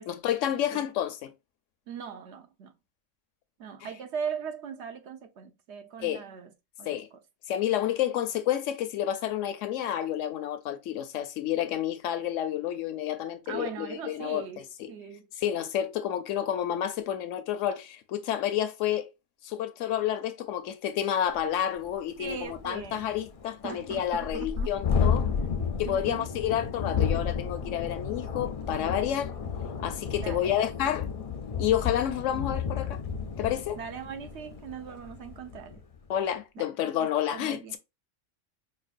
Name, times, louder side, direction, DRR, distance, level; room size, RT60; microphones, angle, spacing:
voice 1, 0.0-1.3 6.0-6.2 6.9-7.1 7.5-14.4 15.4-19.1 19.4-25.3 25.8-29.4 29.8-31.1 31.6-33.0 33.4-33.8 36.1-37.8, left 10 dB, 80° left, 0.9 m, -30 dB
voice 2, 1.9-2.7 3.6-6.5 6.8-7.2 13.5-15.3 22.2-23.1 23.6-24.7 25.6-26.3 30.2-30.6 33.8-35.8 36.6-37.8, right 7 dB, 65° right, 0.9 m, -40 dB
Thunderstorm, 21.4-21.5 21.8-21.9 22.2-35.8, left 6 dB, 55° left, 0.4 m, -32 dB
5.1 x 2.3 x 2.5 m
omnidirectional pair, 1.3 m